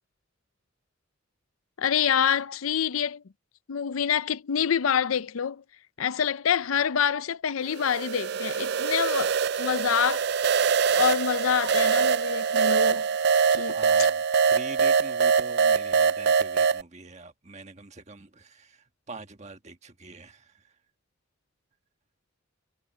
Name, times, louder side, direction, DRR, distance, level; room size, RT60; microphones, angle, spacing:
voice 1, 1.8-3.2 3.7-5.6 6.0-10.3 10.9-13.1 13.5-13.7, left 8 dB, 80° left, 0.5 m, -26 dB
sound 1, 7.7-16.8, right 6 dB, 50° right, 0.4 m, -23 dB
voice 2, 13.5-20.8, right 3 dB, 35° right, 1.5 m, -44 dB
head